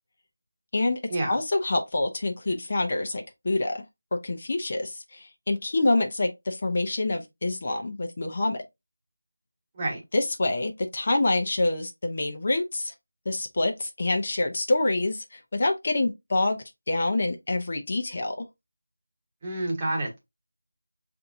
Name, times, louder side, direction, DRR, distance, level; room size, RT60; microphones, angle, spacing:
voice 1, 1.3-3.8 4.1-8.6 10.1-12.9 13.3-18.4, left 2 dB, 45° left, 0.6 m, -26 dB
voice 2, 19.4-20.2, right 1 dB, 25° right, 1.2 m, -28 dB
6.6 x 2.6 x 2.6 m
figure-of-eight pair, 170°, 0 cm